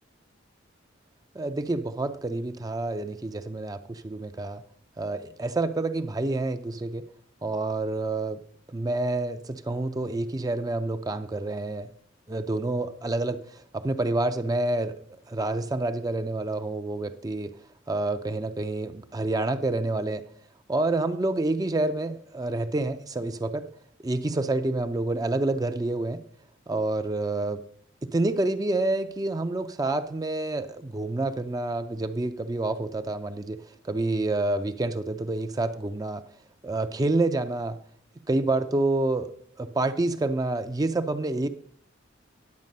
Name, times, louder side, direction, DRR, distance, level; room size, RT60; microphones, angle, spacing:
voice 1, 1.3-4.6 5.0-7.1 7.4-8.4 8.7-11.9 12.3-14.9 15.3-17.5 17.9-20.2 20.7-23.7 24.0-26.2 26.7-27.6 28.0-36.2 36.6-37.8 38.3-39.3 39.6-41.5, right 2 dB, 20° right, 9 dB, 0.4 m, -28 dB
10.5 x 7.4 x 5.3 m, 0.66 s
head